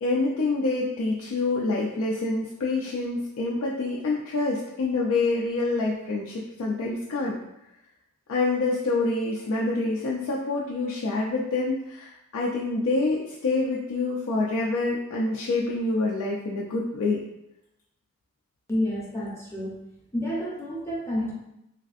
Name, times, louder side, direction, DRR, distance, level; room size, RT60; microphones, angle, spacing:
voice 1, 0.0-7.4 8.3-17.2, left 3 dB, 65° left, -3 dB, 0.3 m, -26 dB
voice 2, 18.7-19.8 20.1-21.3, left 1 dB, 10° left, -6 dB, 0.6 m, -29 dB
3.1 x 2.4 x 2.4 m, 0.87 s
head